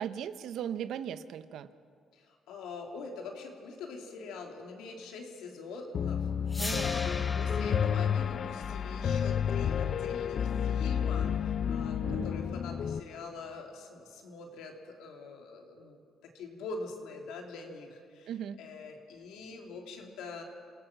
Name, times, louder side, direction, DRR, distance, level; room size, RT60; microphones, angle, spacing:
voice 1, 0.0-1.7 6.6-7.0 12.0-12.4 18.3-18.6, right 9 dB, 80° right, 13 dB, 0.9 m, -38 dB
voice 2, 2.1-6.6 6.8-18.3 18.6-20.4, left 4 dB, 90° left, 2 dB, 3.0 m, -44 dB
Piano, 5.9-13.0, left 8 dB, 55° left, 0.6 m, -30 dB
sound 1, 6.5-12.5, left 2 dB, 20° left, 0.9 m, -42 dB
26.5 x 18.0 x 6.0 m, 2.2 s
cardioid pair, 90°, 0 cm